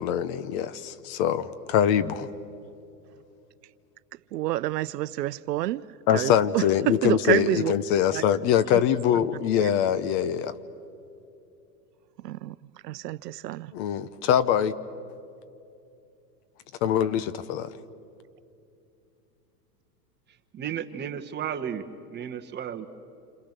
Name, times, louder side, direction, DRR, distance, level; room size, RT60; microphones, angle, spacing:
voice 1, 0.0-2.3 6.1-10.5 13.7-14.7 16.8-17.8, left 9 dB, 45° left, 1.0 m, -24 dB
voice 2, 4.3-5.9 6.1-7.7 8.1-8.2 8.7-8.8 9.6-9.7 12.2-12.6 12.8-13.7, right 15 dB, 80° right, 0.7 m, -28 dB
voice 3, 20.5-21.8 22.1-22.9, right 9 dB, 20° right, 1.3 m, -33 dB
28.0 x 26.5 x 6.7 m
hypercardioid pair, 125°, 48 cm